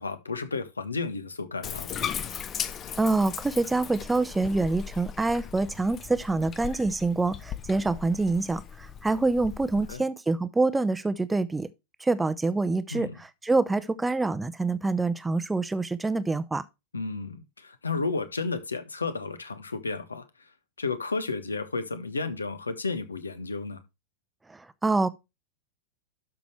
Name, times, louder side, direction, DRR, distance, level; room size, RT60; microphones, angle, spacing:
voice 1, 0.0-2.1 9.9-10.0 12.9-13.2 16.9-20.2 20.8-23.8, left 3 dB, 75° left, 1.4 m, -32 dB
Bathtub (filling or washing), 1.6-10.0, left 8 dB, 25° left, 0.8 m, -38 dB
voice 2, 3.0-11.7 12.0-16.6 24.5-25.1, right 3 dB, 10° right, 0.6 m, -26 dB
12.0 x 6.1 x 3.1 m
figure-of-eight pair, 90°, 0 cm